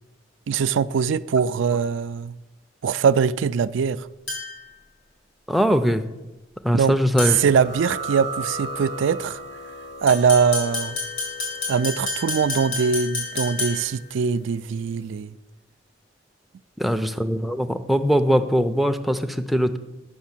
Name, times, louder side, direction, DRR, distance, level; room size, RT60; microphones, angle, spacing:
voice 1, 0.5-2.3 2.8-4.1 6.7-6.9 7.2-9.4 10.0-11.0 11.7-15.3, right 6 dB, 70° right, 0.3 m, -22 dB
sound 1, 4.3-4.7 7.2-7.6 10.1-14.0, left 4 dB, 90° left, 4.1 m, -30 dB
voice 2, 5.5-6.0 6.6-7.4 16.8-19.8, equal, ahead, 0.4 m, -21 dB
sound 2, 7.3-14.5, right 2 dB, 55° left, 0.8 m, -37 dB
9.4 x 6.0 x 7.3 m
head